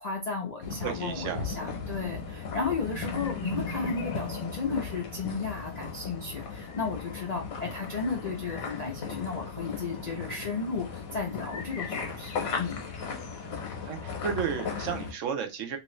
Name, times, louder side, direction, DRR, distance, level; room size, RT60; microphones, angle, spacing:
voice 1, 0.0-12.8, left 4 dB, 50° left, -1 dB, 0.5 m, -34 dB
sound 1, 0.6-15.1, left 5 dB, 80° left, 1.3 m, -36 dB
voice 2, 0.8-1.7 13.8-15.8, right 7 dB, 70° right, 6 dB, 0.9 m, -33 dB
3.0 x 2.5 x 3.0 m, 0.25 s
omnidirectional pair, 1.5 m